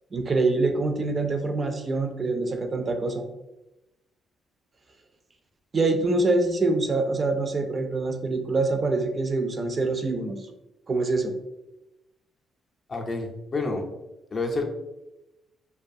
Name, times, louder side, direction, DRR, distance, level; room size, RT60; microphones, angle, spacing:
voice 1, 0.1-3.2 5.7-10.5 10.9-11.3, right 3 dB, 35° right, 5 dB, 0.3 m, -25 dB
voice 2, 12.9-13.8 14.3-14.6, left 3 dB, 40° left, 2 dB, 0.4 m, -28 dB
2.3 x 2.2 x 2.6 m, 0.95 s
cardioid pair, 90°, 0 cm